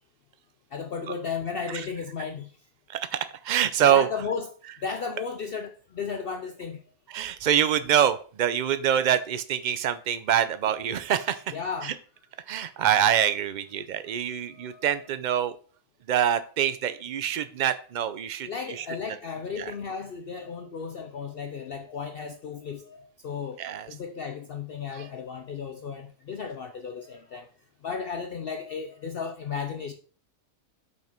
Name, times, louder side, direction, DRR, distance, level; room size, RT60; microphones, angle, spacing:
voice 1, 0.7-2.5 3.8-4.5 4.8-6.8 11.5-12.0 14.5-14.9 18.5-23.6 23.9-27.5 27.8-29.9, left 5 dB, 55° left, 0.6 m, -34 dB
voice 2, 3.4-4.1 7.1-11.4 11.8-11.9 12.5-15.6 16.1-18.9 19.6-19.7 23.6-23.9 24.9-25.0, right 9 dB, 65° right, 0.4 m, -25 dB
6.1 x 5.9 x 4.4 m
omnidirectional pair, 1.5 m